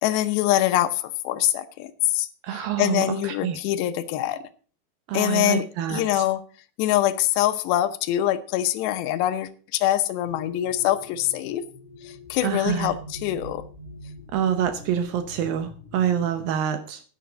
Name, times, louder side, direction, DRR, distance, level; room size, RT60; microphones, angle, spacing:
voice 1, 0.0-4.4 5.1-6.4 6.8-11.6 12.0-13.6, left 13 dB, 85° left, 11 dB, 3.0 m, -24 dB
voice 2, 2.4-3.6 5.1-6.2 12.4-12.9 14.3-17.0, right 9 dB, 70° right, 8 dB, 2.3 m, -26 dB
sound 1, 10.2-16.5, left 2 dB, 45° left, 3.4 m, -43 dB
10.5 x 10.0 x 5.1 m, 0.38 s
omnidirectional pair, 4.8 m